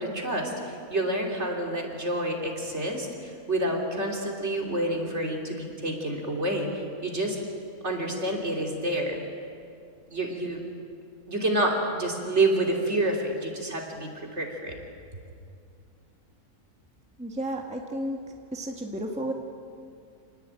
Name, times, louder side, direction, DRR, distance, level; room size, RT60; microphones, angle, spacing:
voice 1, 0.0-7.4 7.8-9.2 10.1-10.6 11.3-14.8, right 1 dB, 45° right, 1 dB, 3.6 m, -28 dB
voice 2, 17.2-18.2 18.5-19.3, right 1 dB, 5° right, 2 dB, 1.6 m, -32 dB
27.0 x 19.0 x 9.0 m, 2.4 s
omnidirectional pair, 1.6 m